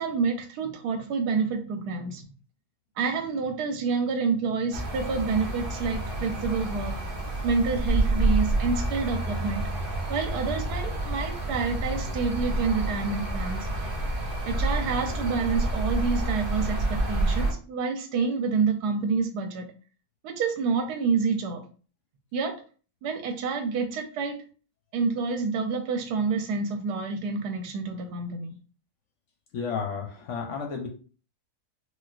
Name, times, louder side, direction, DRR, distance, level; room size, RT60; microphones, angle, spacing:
voice 1, 0.0-2.2 3.0-6.9 7.4-9.6 10.1-13.7 14.4-19.7 20.2-21.6 22.3-22.5 23.0-24.3 24.9-28.5, right 5 dB, 85° right, 5 dB, 1.2 m, -28 dB
sound 1, 4.7-17.5, right 1 dB, 45° right, 0.7 m, -28 dB
voice 2, 29.5-30.9, left 5 dB, 65° left, 2 dB, 0.8 m, -32 dB
4.2 x 2.1 x 2.4 m, 0.39 s
omnidirectional pair, 1.6 m